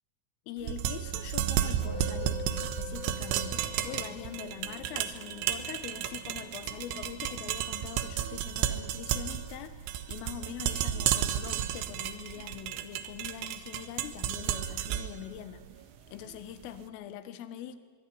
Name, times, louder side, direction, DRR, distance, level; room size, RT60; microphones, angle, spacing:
voice 1, 0.5-17.8, left 10 dB, 80° left, 12 dB, 4.0 m, -43 dB
sound 1, 0.6-16.7, right 11 dB, 75° right, 3.4 m, -33 dB
Musical instrument, 1.8-11.3, left 6 dB, 35° left, 6.9 m, -47 dB
23.5 x 23.5 x 9.9 m, 1.5 s
omnidirectional pair, 5.8 m